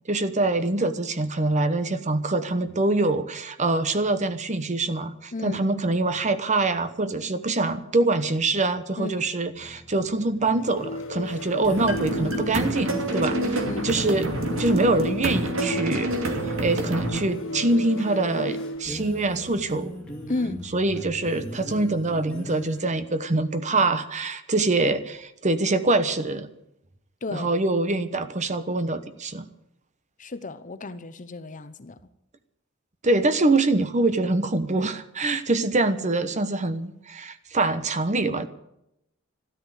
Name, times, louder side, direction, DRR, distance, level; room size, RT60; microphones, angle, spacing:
voice 1, 0.1-16.1 16.4-20.0 20.7-26.5 27.3-29.5 33.0-38.5, right 2 dB, 35° right, 1.1 m, -24 dB
voice 2, 5.3-5.6 9.0-9.3 13.7-13.9 20.3-20.6 27.2-27.5 30.2-32.0, left 2 dB, 40° left, 0.9 m, -33 dB
sound 1, 9.5-22.8, equal, 5° left, 2.4 m, -38 dB
sound 2, 10.6-19.0, left 1 dB, 75° left, 1.5 m, -35 dB
sound 3, 11.8-17.2, right 1 dB, 70° right, 2.5 m, -28 dB
13.0 x 13.0 x 8.3 m
head